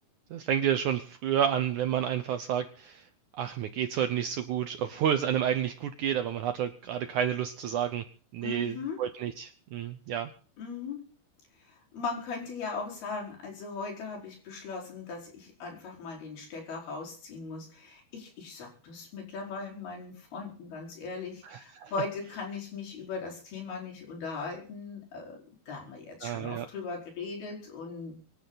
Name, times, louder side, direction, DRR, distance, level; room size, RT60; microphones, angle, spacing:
voice 1, 0.3-3.1 3.3-8.1 8.3-10.3 21.4-21.9 26.2-26.7, right 9 dB, 70° right, 10 dB, 1.9 m, -30 dB
voice 2, 8.4-9.0 10.6-11.0 11.6-28.2, left 4 dB, 75° left, -1 dB, 6.8 m, -39 dB
25.5 x 11.0 x 4.1 m, 0.41 s
omnidirectional pair, 4.5 m